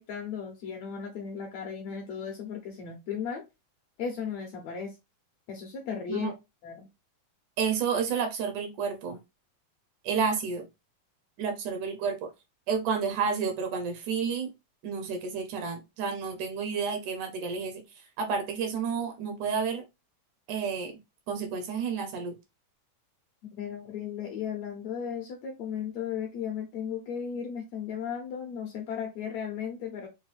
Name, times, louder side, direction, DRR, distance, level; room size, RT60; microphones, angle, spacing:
voice 1, 0.0-3.4 4.0-4.9 5.5-6.3 6.6-6.9 23.4-30.1, left 7 dB, 75° left, 1.7 m, -35 dB
voice 2, 7.6-9.2 10.0-10.7 11.4-12.3 12.7-14.5 14.8-17.8 18.2-19.8 20.5-21.0 21.3-22.3, right 6 dB, 75° right, 2.0 m, -30 dB
6.2 x 2.2 x 3.2 m
omnidirectional pair, 3.9 m